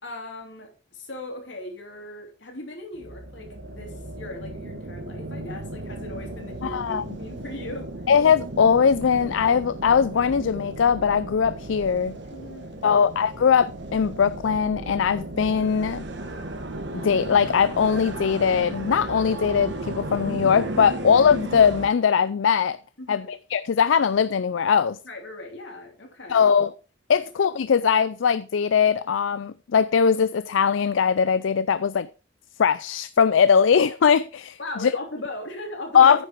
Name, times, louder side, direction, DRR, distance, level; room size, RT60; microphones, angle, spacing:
voice 1, 0.0-7.9 12.3-13.0 23.0-23.3 25.0-26.5 27.1-27.2 34.6-36.3, left 1 dB, 70° left, 3.3 m, -38 dB
sound 1, 2.9-21.9, right 1 dB, 65° right, 1.6 m, -35 dB
voice 2, 6.6-7.0 8.1-12.2 12.8-16.0 16.9-22.8 23.1-25.0 26.3-26.7 27.1-32.1 32.6-34.9 35.9-36.2, left 7 dB, 85° left, 0.4 m, -20 dB
9.6 x 6.7 x 4.8 m
head